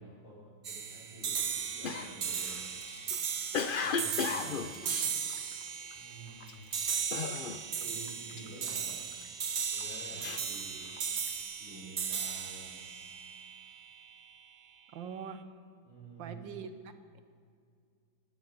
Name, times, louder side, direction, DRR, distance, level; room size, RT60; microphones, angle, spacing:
voice 1, 0.0-2.7 3.8-4.6 5.9-6.6 7.8-9.0 9.7-10.9 11.6-12.8 15.8-16.4, right 2 dB, 60° left, -10 dB, 6.2 m, -49 dB
sound 1, 0.6-14.1, right 7 dB, 70° right, 0.5 m, -37 dB
Cough, 1.8-5.9 6.4-6.7 7.1-7.8 8.1-9.3 9.8-11.3, left 5 dB, 90° left, 0.4 m, -36 dB
voice 2, 4.4-5.3 14.9-15.4 16.2-17.2, right 6 dB, 85° right, 9 dB, 1.7 m, -45 dB
18.0 x 17.5 x 4.1 m, 2.2 s
omnidirectional pair, 2.0 m